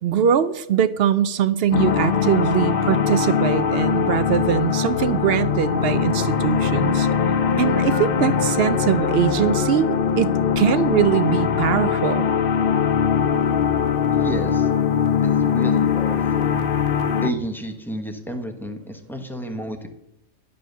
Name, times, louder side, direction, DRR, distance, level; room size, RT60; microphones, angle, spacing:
voice 1, 0.0-7.1 7.6-12.3, right 9 dB, 60° right, 15 dB, 0.7 m, -22 dB
sound 1, 1.7-17.3, left 7 dB, 55° left, 0.7 m, -21 dB
sound 2, 5.3-10.5, right 3 dB, 35° right, 0.9 m, -37 dB
voice 2, 14.1-14.7 15.2-16.5 17.2-19.9, equal, ahead, 5 dB, 0.9 m, -31 dB
11.5 x 5.6 x 6.6 m, 0.86 s
omnidirectional pair, 1.3 m